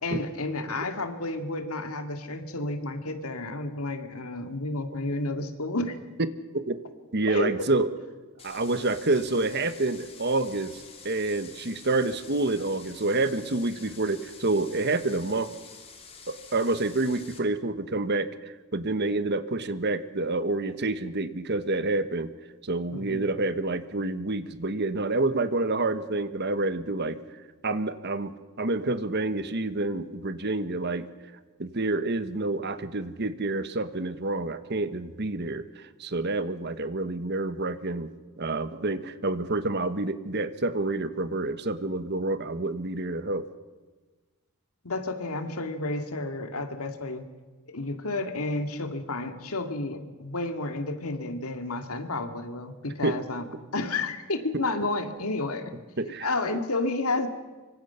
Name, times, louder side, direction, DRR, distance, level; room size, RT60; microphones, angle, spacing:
voice 1, 0.0-6.0 7.3-7.5 22.9-23.2 44.8-47.3 47.7-53.4 53.7-55.7 56.2-57.3, left 2 dB, 75° left, 7 dB, 2.1 m, -31 dB
voice 2, 7.1-7.9 8.4-15.5 16.3-22.3 22.6-27.2 27.6-31.1 31.6-43.4 53.0-53.2 56.0-56.6, right 2 dB, 50° right, 11 dB, 1.3 m, -28 dB
sound 1, 8.4-17.4, left 5 dB, 25° left, 2.9 m, -48 dB
25.5 x 24.5 x 5.7 m, 1.3 s
head